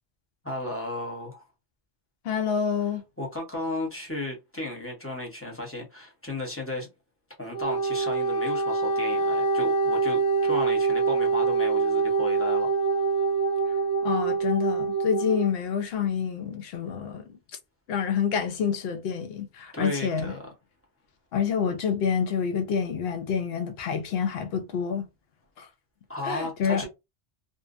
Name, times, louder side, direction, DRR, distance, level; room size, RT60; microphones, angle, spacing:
voice 1, 0.4-1.4 3.2-6.9 7.4-12.7 19.7-20.4 26.1-26.9, left 1 dB, 15° left, 0.7 m, -34 dB
voice 2, 2.2-3.0 14.0-17.4 17.9-20.4 21.3-25.1 25.6-25.7 26.2-26.9, left 7 dB, 70° left, 0.8 m, -27 dB
Wind instrument woodwind instrument, 7.4-15.5, right 4 dB, 40° left, 0.9 m, -25 dB
2.6 x 2.1 x 2.4 m
omnidirectional pair, 1.1 m